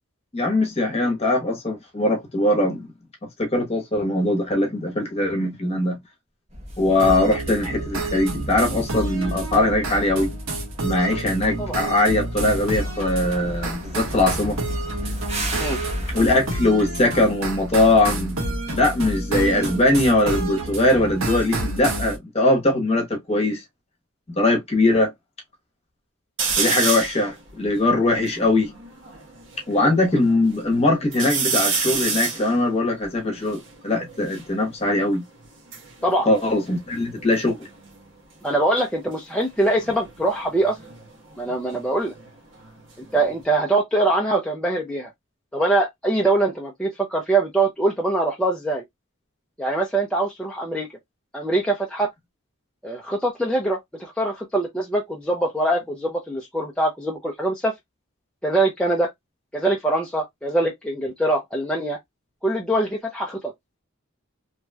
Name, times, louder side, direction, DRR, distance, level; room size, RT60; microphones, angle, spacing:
voice 1, 0.3-2.9 3.4-6.0 6.8-10.3 10.8-14.6 16.1-23.6 24.4-25.1 26.6-28.7 29.7-35.2 36.3-37.6, left 2 dB, 30° left, 1.0 m, -21 dB
sound 1, 6.5-16.3, right 1 dB, 30° right, 1.0 m, -34 dB
sound 2, 7.0-22.2, right 2 dB, 75° right, 1.3 m, -29 dB
sound 3, 26.4-27.2 27.8-27.9 28.1-29.6 30.1-30.7 31.1-34.5 35.4-37.3 37.6-38.1 39.7-42.3 42.6-43.4, right 5 dB, 60° right, 1.1 m, -29 dB
voice 2, 38.4-40.8 41.4-42.1 43.1-45.1 45.5-48.8 49.6-50.9 51.3-52.1 52.8-57.7 58.4-59.1 59.5-62.0 62.4-63.5, right 2 dB, 5° left, 0.5 m, -23 dB
3.0 x 2.9 x 2.2 m
head